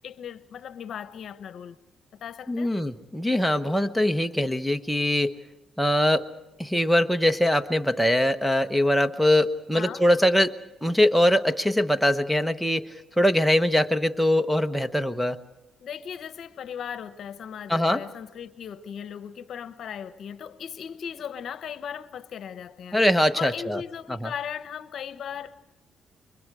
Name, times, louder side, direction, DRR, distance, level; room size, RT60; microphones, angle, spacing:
voice 1, 0.0-1.8 2.2-2.7 9.7-10.0 15.8-23.0 23.4-25.6, left 8 dB, 65° left, 1.0 m, -37 dB
voice 2, 2.5-5.3 5.8-6.3 6.6-15.4 17.7-18.0 22.9-23.8 24.2-24.3, left 1 dB, ahead, 1.1 m, -22 dB
29.5 x 23.5 x 4.9 m
cardioid pair, 90°, 0 cm